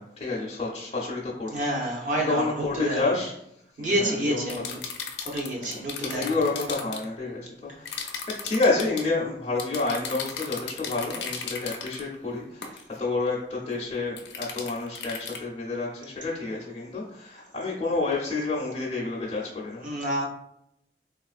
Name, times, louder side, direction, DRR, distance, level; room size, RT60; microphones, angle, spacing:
voice 1, 0.0-1.5 1.8-3.3 3.8-5.2 5.6-19.8, left 3 dB, 35° left, -5 dB, 0.5 m, -29 dB
voice 2, 1.5-3.1 3.8-4.8 5.2-6.4 19.8-20.2, right 1 dB, 45° right, -2 dB, 0.6 m, -28 dB
sound 1, 4.5-7.0 7.9-9.1 9.6-12.0 12.6-12.8 14.2-15.4, left 6 dB, 85° left, 0.5 m, -36 dB
3.6 x 2.4 x 2.4 m, 0.77 s
head